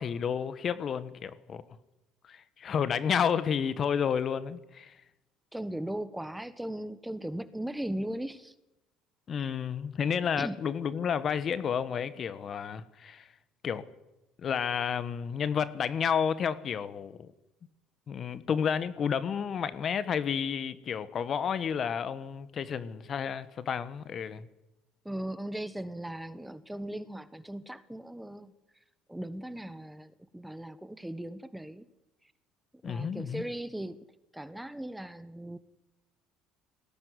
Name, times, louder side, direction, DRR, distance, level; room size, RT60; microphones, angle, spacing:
voice 1, 0.0-1.6 2.3-4.9 9.3-13.3 13.6-13.8 14.4-17.3 18.1-24.5 32.8-33.4, left 7 dB, 45° left, 14 dB, 1.4 m, -31 dB
voice 2, 5.5-8.5 9.4-9.5 10.4-10.6 25.0-28.5 29.1-31.9 32.8-34.0 34.3-35.6, right 1 dB, 5° right, 14 dB, 1.3 m, -38 dB
19.0 x 17.5 x 9.7 m, 0.94 s
supercardioid pair, 75°, 0 cm